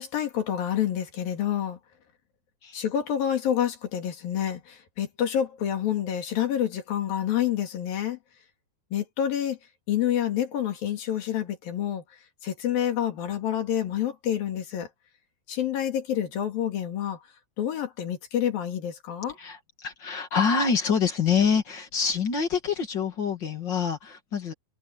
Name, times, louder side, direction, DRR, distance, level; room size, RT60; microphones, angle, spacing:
voice 1, 0.0-1.8 2.7-8.2 8.9-9.6 9.9-12.0 12.4-14.9 15.5-17.2 17.6-19.4, left 10 dB, 70° left, 4.2 m, -28 dB
voice 2, 19.4-24.5, left 6 dB, 35° left, 2.3 m, -26 dB
omnidirectional pair, 4.3 m